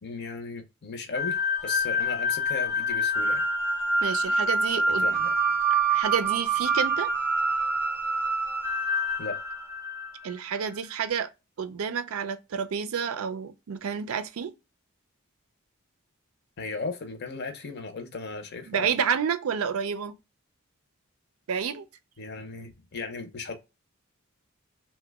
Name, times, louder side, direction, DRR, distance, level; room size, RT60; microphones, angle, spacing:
voice 1, 0.0-3.5 4.9-5.4 9.2-9.4 16.6-18.9 22.2-23.5, left 3 dB, 50° left, 0.6 m, -36 dB
sound 1, 1.1-10.3, right 1 dB, 10° right, 0.6 m, -26 dB
voice 2, 4.0-5.2 5.7-7.1 10.2-11.3 11.6-14.5 18.7-20.2 21.5-21.9, right 7 dB, 80° right, 0.4 m, -29 dB
2.9 x 2.1 x 3.3 m
head